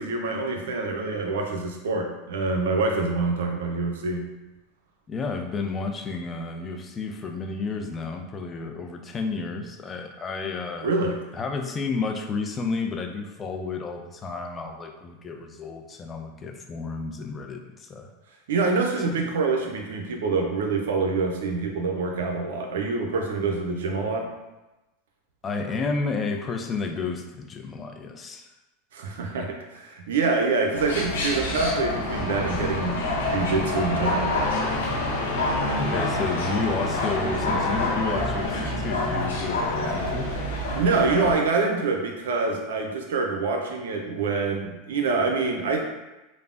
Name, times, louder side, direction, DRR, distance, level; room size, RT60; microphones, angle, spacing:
voice 1, 0.0-4.3 10.8-11.1 18.5-24.3 28.9-34.4 40.7-45.8, right 3 dB, 80° right, 2 dB, 0.5 m, -26 dB
voice 2, 5.1-10.9 11.3-18.1 19.1-19.2 25.4-28.5 35.8-40.3, left 4 dB, 25° left, 3 dB, 0.4 m, -31 dB
sound 1, 30.7-41.3, left 2 dB, 85° left, 0.6 m, -27 dB
3.3 x 2.0 x 2.4 m, 1.0 s
hypercardioid pair, 105°, 0 cm